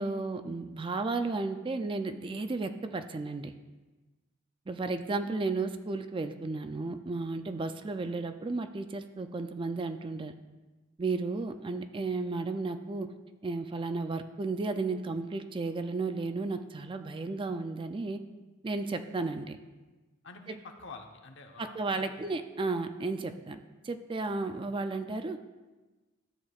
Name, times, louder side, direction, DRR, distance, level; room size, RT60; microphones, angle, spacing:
voice 1, 0.0-3.5 4.7-10.3 11.0-13.1 13.4-18.2 18.6-19.6 20.5-20.6 21.6-23.6 23.8-25.4, right 3 dB, 25° right, 8 dB, 0.4 m, -33 dB
voice 2, 20.2-22.3, left 3 dB, 65° left, 4 dB, 0.9 m, -48 dB
13.0 x 8.3 x 2.4 m, 1.2 s
head